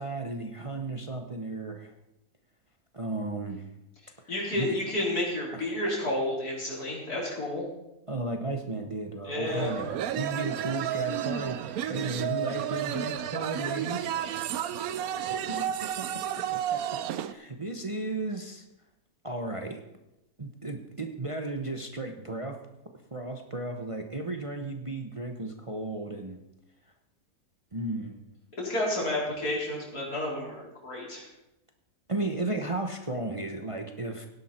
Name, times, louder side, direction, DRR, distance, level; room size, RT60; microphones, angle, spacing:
voice 1, 0.0-1.9 2.9-3.6 4.2-4.8 5.5-5.6 8.1-14.1 15.3-16.1 16.4-16.8 17.2-18.6 19.2-19.8 20.4-22.6 23.1-26.4 27.7-28.4 32.1-34.3, right 2 dB, 25° right, 4 dB, 0.9 m, -34 dB
voice 2, 4.3-7.6 9.2-9.8 28.6-31.3, left 1 dB, 80° left, -4 dB, 4.8 m, -31 dB
sound 1, 9.5-17.3, right 10 dB, 70° right, 1.1 m, -32 dB
17.5 x 11.0 x 4.4 m, 0.92 s
omnidirectional pair, 1.6 m